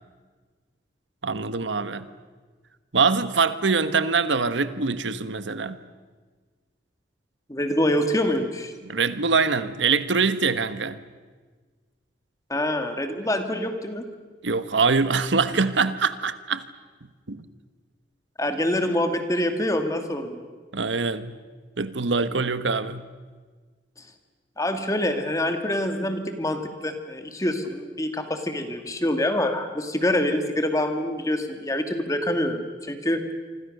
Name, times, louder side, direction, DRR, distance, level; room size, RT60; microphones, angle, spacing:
voice 1, 1.2-2.1 2.9-5.8 8.8-11.0 14.4-16.6 17.3-17.4 20.7-21.4 21.8-23.0, right 4 dB, 90° right, 13 dB, 1.2 m, -24 dB
voice 2, 7.5-8.7 12.5-14.1 18.4-20.4 24.6-33.2, left 1 dB, 20° left, 6 dB, 2.2 m, -25 dB
27.0 x 25.5 x 6.7 m, 1.4 s
head